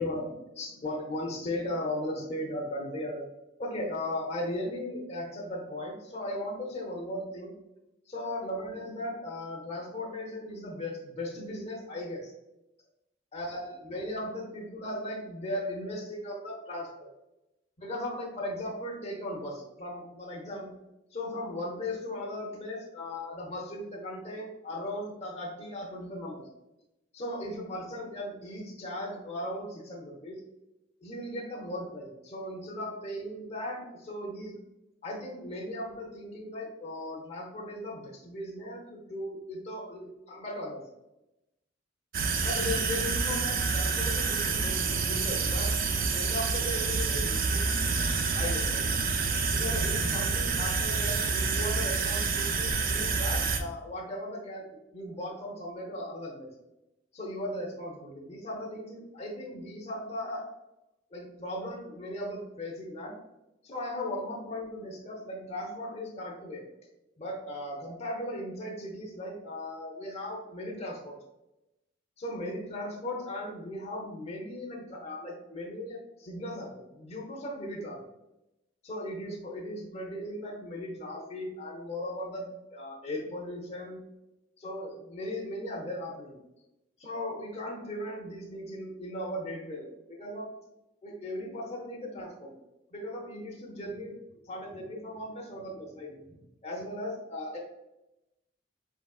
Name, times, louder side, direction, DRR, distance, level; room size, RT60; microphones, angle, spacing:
voice 1, 0.0-3.3 3.6-7.5 8.1-12.3 13.3-17.1 17.8-20.7 21.1-26.5 27.1-30.4 31.0-34.6 35.0-40.8 42.4-45.8 46.1-47.7 48.3-48.8 49.5-56.5 57.1-60.5 61.1-63.2 63.6-66.6 67.2-71.1 72.2-78.0 78.8-84.0 84.6-86.3 87.0-90.5 91.0-92.5 92.9-96.2 96.6-97.6, left 1 dB, 35° left, -2 dB, 0.7 m, -37 dB
sound 1, 42.1-53.6, right 4 dB, 50° right, 0.4 m, -28 dB
4.4 x 3.7 x 2.3 m, 0.92 s
head